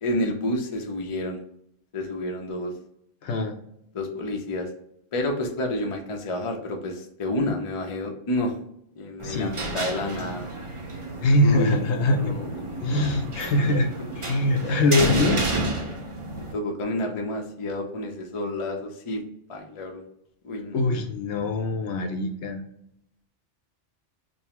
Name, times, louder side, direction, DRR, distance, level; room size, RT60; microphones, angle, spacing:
voice 1, 0.0-1.4 1.9-2.7 3.9-4.7 5.1-8.5 9.0-10.5 11.4-12.8 14.6-15.0 16.3-19.2 19.5-20.0 20.4-20.8, left 1 dB, 40° left, 2 dB, 0.5 m, -30 dB
voice 2, 3.2-3.5 9.2-9.5 11.2-12.3 12.8-13.9 14.2-15.4 20.7-22.6, left 1 dB, 70° left, 4 dB, 0.9 m, -23 dB
sound 1, 9.2-16.5, right 2 dB, 35° right, 0.5 m, -31 dB
5.3 x 2.0 x 2.9 m, 0.74 s
omnidirectional pair, 1.3 m